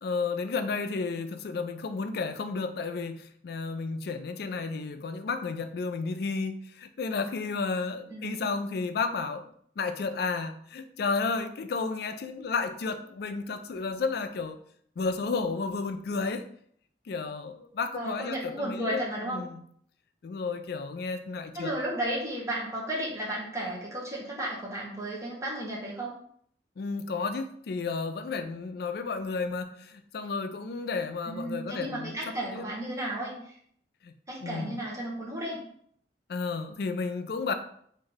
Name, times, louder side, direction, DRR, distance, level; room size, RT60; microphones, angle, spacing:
voice 1, 0.0-9.5 9.8-14.6 15.0-16.5 17.1-19.6 20.2-21.7 26.8-32.7 34.0-34.2 34.4-34.9 36.3-37.5, left 4 dB, 60° left, 8 dB, 0.4 m, -32 dB
voice 2, 8.1-8.5 17.9-19.4 21.5-26.1 31.3-33.6 34.3-35.6, right 1 dB, 20° right, -5 dB, 1.0 m, -34 dB
3.1 x 2.6 x 3.9 m, 0.64 s
head